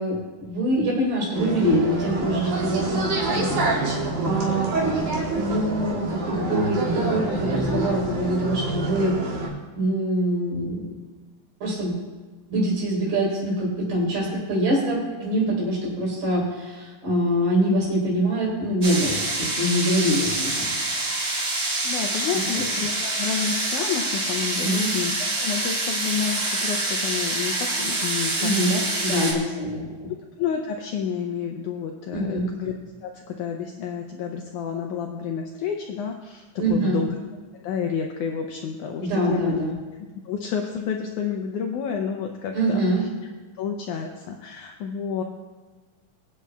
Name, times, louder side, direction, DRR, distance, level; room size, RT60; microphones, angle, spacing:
voice 1, 0.0-9.3 9.8-10.8 11.6-12.0 12.5-20.7 22.1-22.4 24.6-24.9 28.4-30.1 32.1-32.5 36.6-37.0 39.0-39.7 42.5-43.0, right 1 dB, 90° right, -5 dB, 5.8 m, -24 dB
sound 1, 1.3-9.5, right 3 dB, 75° right, 4.1 m, -26 dB
sound 2, 18.8-29.3, right 2 dB, 30° right, 2.5 m, -26 dB
voice 2, 21.8-28.8 29.2-29.5 30.4-32.7 33.0-37.2 37.6-39.6 40.2-43.1 43.6-45.2, left 7 dB, 85° left, 2 dB, 1.7 m, -30 dB
24.5 x 8.4 x 2.3 m, 1.3 s
omnidirectional pair, 4.2 m